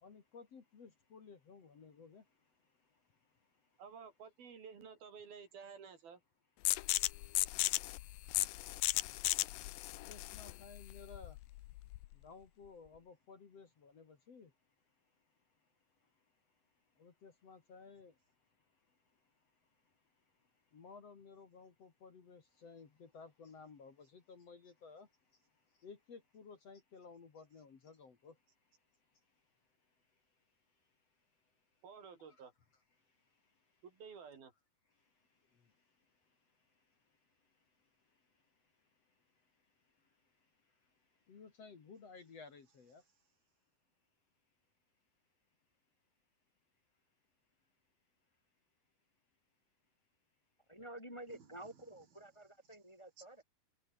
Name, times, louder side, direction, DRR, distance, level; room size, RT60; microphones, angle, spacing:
voice 1, 0.0-2.2 10.1-11.4 12.2-14.5 17.0-18.1 20.7-25.1 25.8-28.3 41.3-43.0, left 5 dB, 45° left, 3.3 m, -55 dB
voice 2, 3.8-6.2 31.8-32.5 33.8-34.5 51.3-51.5 53.2-53.4, right 6 dB, 70° right, 5.9 m, -53 dB
sound 1, 6.7-12.1, left 18 dB, 75° left, 2.2 m, -36 dB
voice 3, 50.7-53.4, right 1 dB, 10° left, 3.4 m, -51 dB
omnidirectional pair, 4.4 m